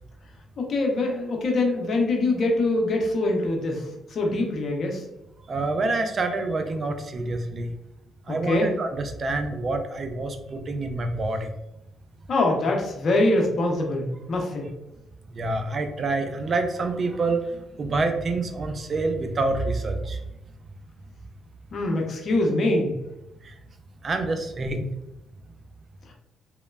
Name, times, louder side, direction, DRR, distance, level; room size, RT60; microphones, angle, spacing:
voice 1, 0.6-3.8 4.1-5.0 8.3-8.7 12.3-14.7 21.7-23.0, left 2 dB, 55° left, 1 dB, 0.6 m, -24 dB
voice 2, 5.5-7.7 8.3-11.5 15.4-17.4 17.8-20.2 23.5-23.6 24.0-24.8, right 3 dB, 45° right, 6 dB, 0.4 m, -27 dB
3.0 x 2.1 x 2.3 m, 0.91 s
supercardioid pair, 70°, 0 cm